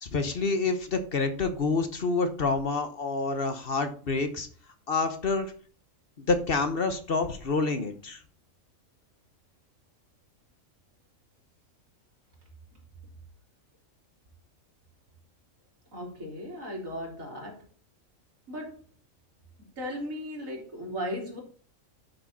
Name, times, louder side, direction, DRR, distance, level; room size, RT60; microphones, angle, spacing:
voice 1, 0.0-4.5 4.9-5.5 6.2-8.2, left 3 dB, 45° left, 8 dB, 1.2 m, -28 dB
voice 2, 15.9-17.7 18.5-18.8 19.6-21.4, equal, 90° right, -1 dB, 3.5 m, -36 dB
10.5 x 6.1 x 4.2 m, 0.42 s
omnidirectional pair, 1.4 m